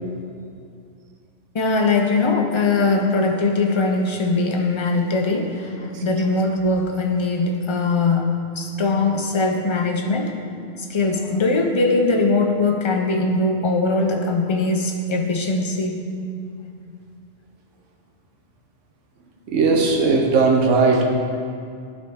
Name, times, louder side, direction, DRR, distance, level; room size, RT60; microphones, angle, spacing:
voice 1, 1.5-10.4 10.9-16.0, left 3 dB, 35° left, 2 dB, 0.4 m, -21 dB
voice 2, 19.5-21.0, right 4 dB, 85° right, 0 dB, 1.2 m, -17 dB
12.0 x 4.1 x 3.5 m, 2.4 s
omnidirectional pair, 1.2 m